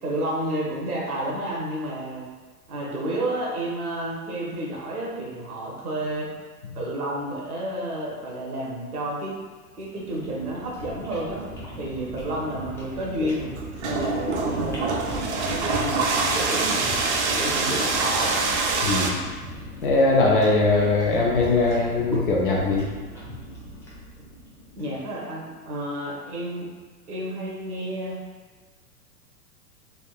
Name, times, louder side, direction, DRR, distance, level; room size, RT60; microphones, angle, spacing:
voice 1, 0.0-2.2 2.7-6.3 6.7-9.4 9.8-11.4 11.7-13.6 13.8-17.0 17.4-18.4 24.8-26.7 27.1-28.2, right 1 dB, 65° right, -3 dB, 1.1 m, -30 dB
sound 1, 9.7-25.0, equal, 5° left, 0.7 m, -38 dB
sound 2, 13.5-19.1, right 3 dB, 50° right, 0.5 m, -25 dB
voice 2, 18.8-19.2 19.8-22.9, left 3 dB, 35° left, -3 dB, 0.4 m, -21 dB
3.5 x 2.4 x 2.4 m, 1.4 s
figure-of-eight pair, 100°, 47 cm